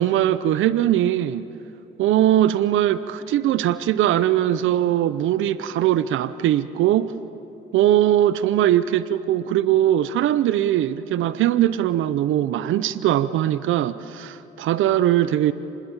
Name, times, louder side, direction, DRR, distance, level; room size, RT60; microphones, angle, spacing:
voice 1, 0.0-1.5 2.0-7.1 7.7-15.5, right 12 dB, 80° right, 14 dB, 0.7 m, -20 dB
29.5 x 21.0 x 7.2 m, 3.0 s
cardioid pair, 90°, 20 cm